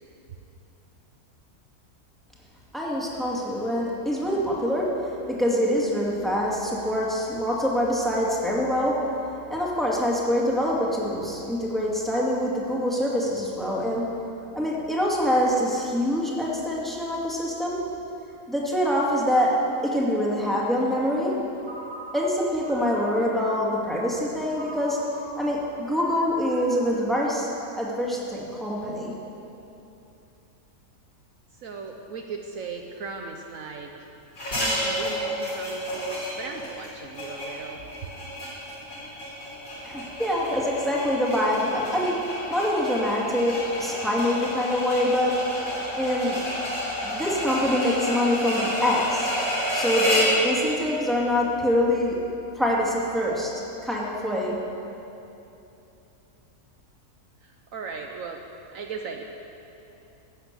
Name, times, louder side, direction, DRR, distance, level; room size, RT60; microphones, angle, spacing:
voice 1, 2.7-9.0 9.5-14.0 14.5-17.8 18.5-19.6 19.8-21.3 22.1-25.0 25.4-27.5 27.8-29.1 39.8-45.4 45.9-46.4 47.0-49.3 49.7-52.2 52.5-54.6, left 1 dB, ahead, -4 dB, 2.2 m, -25 dB
Ringtone, 21.6-23.7 24.5-27.9, right 1 dB, 30° right, 1.8 m, -43 dB
voice 2, 31.5-34.1 34.6-37.9 57.4-58.4 58.7-59.2, right 5 dB, 65° right, 3 dB, 1.1 m, -37 dB
sound 1, 34.4-50.4, equal, 65° left, 4.1 m, -30 dB
16.0 x 8.8 x 6.8 m, 2.9 s
omnidirectional pair, 1.6 m